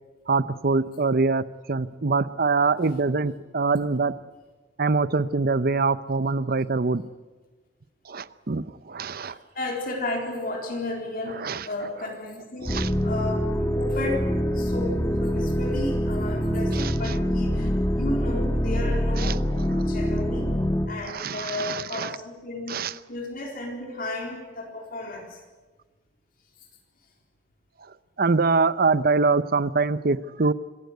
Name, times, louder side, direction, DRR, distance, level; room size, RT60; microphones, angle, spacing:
voice 1, 0.3-4.1 4.8-7.0 8.1-9.4 11.3-11.7 12.6-12.9 16.7-17.2 19.2-19.4 19.7-19.8 21.1-22.2 22.7-22.9 28.2-30.5, right 4 dB, 55° right, 16 dB, 0.8 m, -24 dB
voice 2, 9.2-19.4 19.7-20.5 20.9-25.4, left 2 dB, 55° left, 1 dB, 4.1 m, -33 dB
sound 1, 12.7-20.9, equal, 15° left, 2.4 m, -25 dB
26.5 x 15.0 x 9.4 m, 1.3 s
head